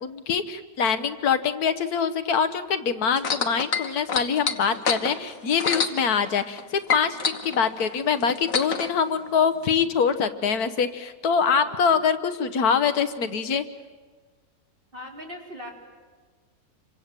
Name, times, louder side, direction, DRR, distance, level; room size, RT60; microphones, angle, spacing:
voice 1, 0.0-13.6, left 6 dB, 80° left, 11 dB, 1.6 m, -24 dB
sound 1, 3.2-6.6 6.9-8.9 9.7-9.8, left 5 dB, 65° left, 1.8 m, -27 dB
voice 2, 11.6-12.0 14.9-15.7, equal, 35° right, 0 dB, 4.1 m, -40 dB
27.5 x 25.0 x 7.6 m, 1.4 s
omnidirectional pair, 1.6 m